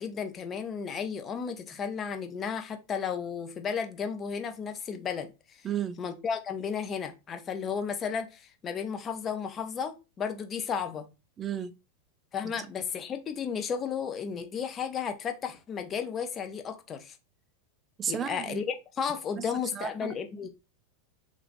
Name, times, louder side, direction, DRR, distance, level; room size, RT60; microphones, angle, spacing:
voice 1, 0.0-5.6 6.0-11.1 12.3-17.2 18.1-20.5, left 6 dB, 30° left, 0.5 m, -33 dB
voice 2, 5.6-6.0 11.4-11.7 18.0-18.6 19.8-20.1, right 9 dB, 30° right, 0.4 m, -32 dB
2.9 x 2.4 x 2.5 m
hypercardioid pair, 105°, 0 cm